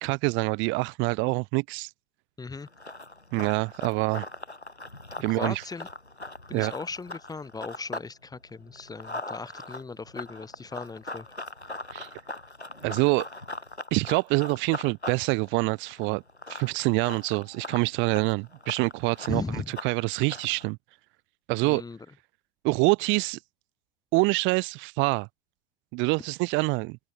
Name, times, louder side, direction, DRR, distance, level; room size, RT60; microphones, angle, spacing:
voice 1, 0.0-1.9 3.3-4.3 5.2-5.6 6.5-6.7 11.9-12.1 12.8-13.3 13.9-16.2 16.5-20.8 21.5-21.8 22.6-23.4 24.1-25.3 25.9-27.0, right 27 dB, 35° right, 0.8 m, -26 dB
voice 2, 2.4-2.7 5.3-5.9 6.5-11.3 19.3-19.7 21.6-22.1, left 4 dB, 10° left, 2.5 m, -37 dB
Run, 2.6-8.1 8.4-20.7, left 2 dB, 90° left, 4.6 m, -40 dB
open air
figure-of-eight pair, 90°, 32 cm